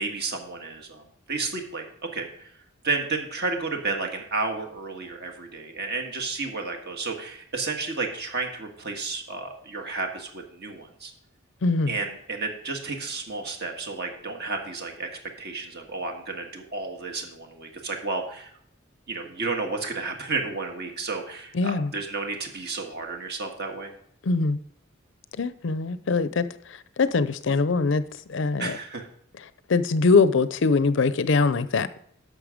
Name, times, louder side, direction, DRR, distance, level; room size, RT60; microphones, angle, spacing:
voice 1, 0.0-1.9 2.1-2.5 2.8-11.1 11.9-15.1 15.4-18.5 19.1-23.9 28.6-29.1, right 3 dB, 55° right, 3 dB, 1.7 m, -32 dB
voice 2, 11.6-11.9 21.5-21.9 24.3-24.6 25.4-26.5 27.0-28.0 28.3-28.8 29.7-31.9, left 4 dB, 65° left, 14 dB, 0.5 m, -22 dB
11.0 x 6.6 x 5.0 m, 0.66 s
head